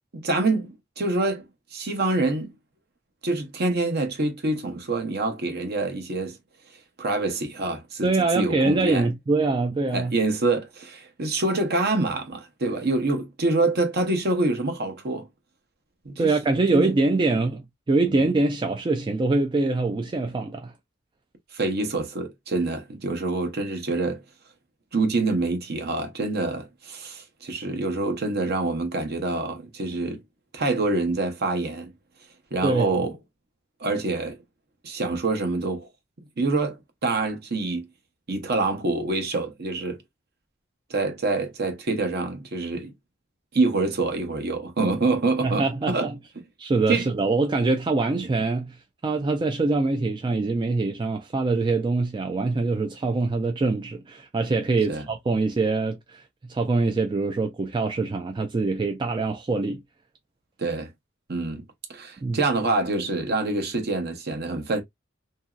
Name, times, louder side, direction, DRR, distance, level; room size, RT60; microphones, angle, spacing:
voice 1, 0.1-2.5 3.2-6.4 7.0-9.1 9.9-15.3 16.0-16.3 16.7-16.9 18.1-18.2 21.5-24.2 24.9-30.2 30.5-31.9 32.5-33.2 33.8-34.4 34.8-35.9 36.4-37.9 38.3-40.0 40.9-42.9 43.5-46.1 46.9-47.1 48.2-48.3 54.9-55.1 60.6-60.9 61.3-61.6 61.9-64.8, right 2 dB, 55° right, 0.8 m, -26 dB
voice 2, 8.0-10.1 16.2-20.7 32.6-33.0 45.4-46.2 46.6-48.8 49.0-56.2 56.5-59.8 62.2-62.4, right 3 dB, 25° right, 0.3 m, -24 dB
2.9 x 2.7 x 2.3 m
head